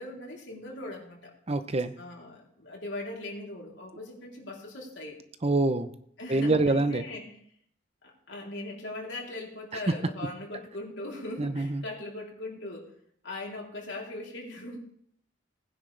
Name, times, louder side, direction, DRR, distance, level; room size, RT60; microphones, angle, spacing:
voice 1, 0.0-1.3 2.0-5.2 6.2-7.4 8.0-12.9 13.2-14.8, left 2 dB, 70° left, -2 dB, 3.6 m, -40 dB
voice 2, 1.5-1.9 5.4-5.9 6.3-7.0 11.4-11.8, right 2 dB, 35° right, 10 dB, 0.7 m, -25 dB
19.0 x 10.0 x 3.4 m, 0.65 s
head